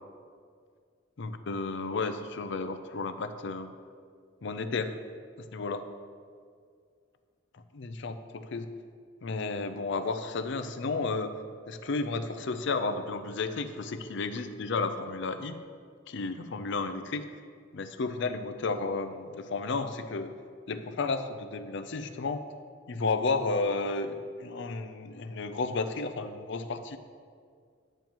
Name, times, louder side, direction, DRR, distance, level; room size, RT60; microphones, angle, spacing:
voice 1, 1.2-3.7 4.4-5.0 5.4-5.9 7.8-8.7 9.2-11.4 11.7-15.5 16.1-17.3 17.7-20.3 20.7-22.5 22.9-27.0, left 3 dB, 65° left, 9 dB, 0.5 m, -32 dB
10.5 x 8.8 x 3.0 m, 2.1 s
head